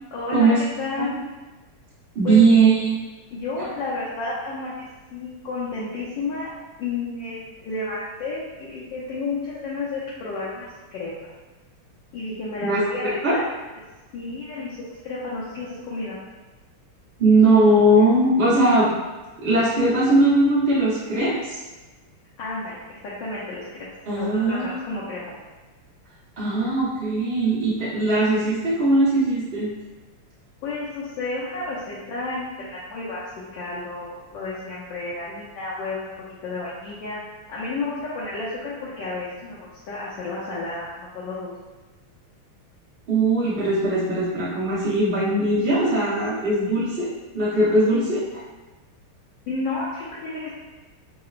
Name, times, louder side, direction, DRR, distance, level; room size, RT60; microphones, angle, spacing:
voice 1, 0.1-1.1 2.2-2.7 3.3-6.5 6.8-11.1 12.1-13.4 14.1-14.8 15.0-16.2 22.4-22.8 23.0-23.6 24.1-25.2 30.6-33.2 33.5-37.2 37.5-41.5 49.5-50.5, left 3 dB, 70° left, -8 dB, 1.2 m, -31 dB
voice 2, 2.1-3.0 12.6-12.8 13.2-13.3 17.2-18.9 19.4-21.6 24.1-24.8 26.4-29.7 43.1-48.4, right 2 dB, 65° right, -11 dB, 0.5 m, -19 dB
4.8 x 2.1 x 2.4 m, 1.2 s
omnidirectional pair, 2.4 m